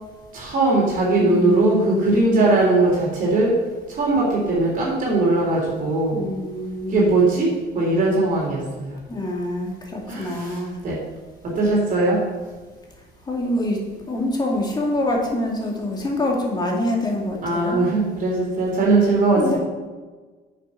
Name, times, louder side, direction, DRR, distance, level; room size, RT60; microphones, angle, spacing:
voice 1, 0.3-3.5 3.9-6.2 6.9-8.9 10.1-11.0 11.4-12.2 17.4-19.6, right 2 dB, 55° right, -4 dB, 3.4 m, -20 dB
voice 2, 1.2-2.4 6.1-7.1 9.1-10.8 13.3-13.8 14.1-17.9 19.4-19.6, left 1 dB, 25° left, -1 dB, 2.5 m, -25 dB
8.6 x 6.7 x 5.7 m, 1.3 s
cardioid pair, 110°, 17 cm